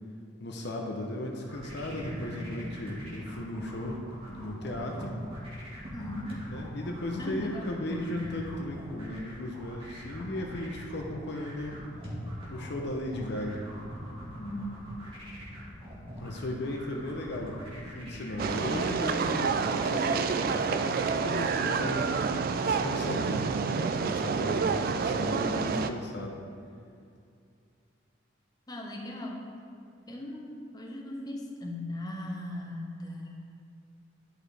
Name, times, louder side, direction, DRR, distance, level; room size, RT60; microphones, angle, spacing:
voice 1, 0.4-5.2 6.5-11.8 12.5-13.7 16.2-22.1 22.6-26.4, left 1 dB, 55° left, 1 dB, 0.7 m, -36 dB
sound 1, 1.5-18.8, equal, 30° right, 1.6 m, -42 dB
voice 2, 5.9-6.4 7.2-7.7 14.4-15.0 28.7-29.5 30.1-33.5, left 1 dB, 20° left, 0 dB, 0.8 m, -38 dB
sound 2, 18.4-25.9, right 5 dB, 45° right, 0.3 m, -28 dB
11.0 x 4.7 x 3.3 m, 2.4 s
head